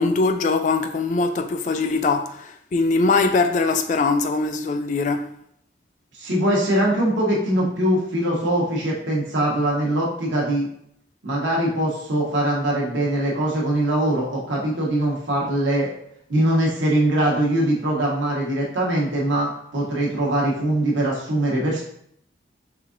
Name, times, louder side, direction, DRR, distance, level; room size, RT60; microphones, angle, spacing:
voice 1, 0.0-5.3, left 3 dB, 40° left, 0.3 m, -22 dB
voice 2, 6.1-10.7 11.2-15.9 16.3-21.8, right 1 dB, 80° right, 1.0 m, -22 dB
4.8 x 3.5 x 2.5 m
head